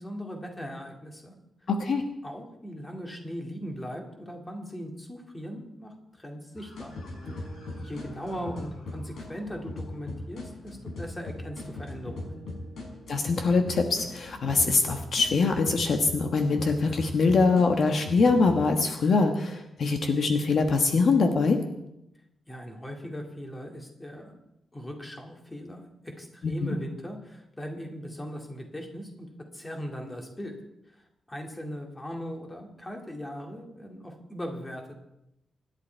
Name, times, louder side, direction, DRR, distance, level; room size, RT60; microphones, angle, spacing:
voice 1, 0.0-1.3 2.2-6.9 7.7-12.4 22.5-24.3 24.7-30.5 30.9-34.9, equal, 10° left, 2 dB, 2.3 m, -39 dB
voice 2, 1.7-2.0 13.1-21.6 26.4-26.7, left 4 dB, 50° left, 5 dB, 1.4 m, -23 dB
sound 1, 6.6-18.8, left 2 dB, 80° left, 5.6 m, -39 dB
25.5 x 11.0 x 4.5 m, 0.85 s
wide cardioid pair, 175°, 0 cm